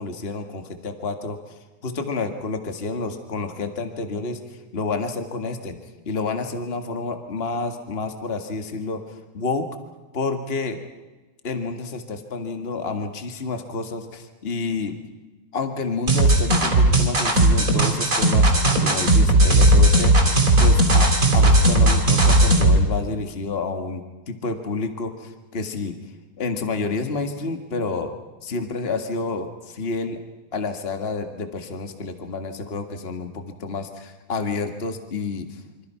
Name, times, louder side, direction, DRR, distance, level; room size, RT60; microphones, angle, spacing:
voice 1, 0.0-1.4 1.8-4.4 4.7-5.8 6.0-9.0 9.3-9.7 10.1-10.8 11.4-15.0 15.5-20.1 20.6-26.0 26.4-28.1 28.4-30.2 30.5-35.5, left 3 dB, 45° left, 7 dB, 0.7 m, -29 dB
sound 1, 16.1-22.8, right 1 dB, 20° right, 3.7 m, -16 dB
27.5 x 26.0 x 5.8 m, 1.2 s
omnidirectional pair, 4.7 m